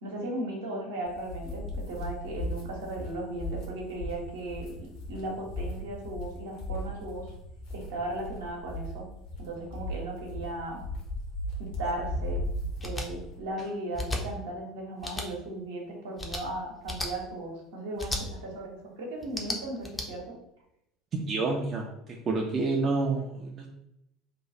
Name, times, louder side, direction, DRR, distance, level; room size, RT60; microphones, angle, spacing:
voice 1, 0.0-7.3 7.7-9.0 9.4-10.8 11.6-12.4 12.8-20.4, right 1 dB, 65° right, -1 dB, 0.9 m, -36 dB
sound 1, 1.1-13.4, left 1 dB, 55° left, 0.9 m, -37 dB
sound 2, 12.8-13.1 13.9-14.2 15.0-15.3 16.2-16.4 16.9-17.1 18.0-18.2 19.2-20.1, left 2 dB, 15° left, 0.6 m, -33 dB
voice 2, 21.1-23.7, right 3 dB, 35° right, -1 dB, 0.5 m, -29 dB
3.0 x 2.3 x 4.0 m, 0.80 s
figure-of-eight pair, 65°, 0 cm